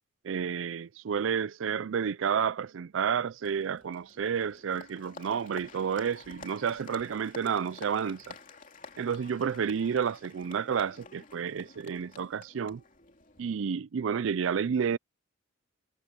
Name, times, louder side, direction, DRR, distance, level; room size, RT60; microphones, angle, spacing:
voice 1, 0.2-8.4 9.0-12.8 13.4-15.0, right 7 dB, 75° right, 0.4 m, -30 dB
Applause, 3.4-13.5, left 4 dB, 40° left, 3.0 m, -50 dB
head